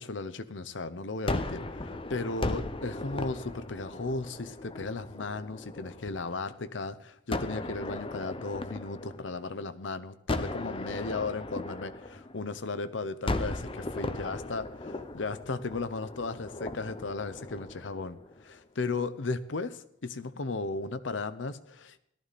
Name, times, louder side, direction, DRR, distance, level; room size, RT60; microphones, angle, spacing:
voice 1, 0.0-22.0, left 3 dB, 85° left, 12 dB, 0.8 m, -36 dB
Gunshot gunfire, 1.3-6.4 7.3-9.7 10.3-12.8 13.3-18.5, left 2 dB, 30° left, 0.8 m, -37 dB
17.5 x 13.0 x 4.2 m, 0.73 s
head